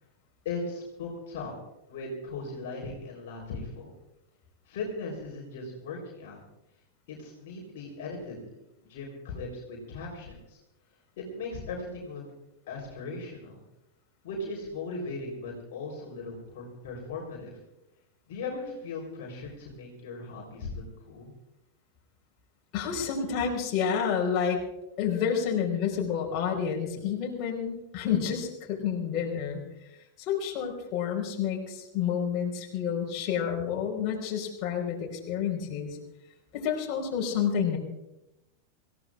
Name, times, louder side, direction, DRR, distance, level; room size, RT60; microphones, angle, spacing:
voice 1, 0.4-1.5 1.9-3.9 4.7-6.4 7.1-8.4 8.9-10.6 11.2-12.2 12.7-13.6 14.2-17.5 18.3-21.3, left 3 dB, 55° left, -2 dB, 3.7 m, -38 dB
voice 2, 22.7-24.6 25.0-29.6 30.2-36.0 36.5-37.8, left 7 dB, 35° left, -1 dB, 4.4 m, -29 dB
26.5 x 15.5 x 2.5 m, 0.90 s
figure-of-eight pair, 90°, 0 cm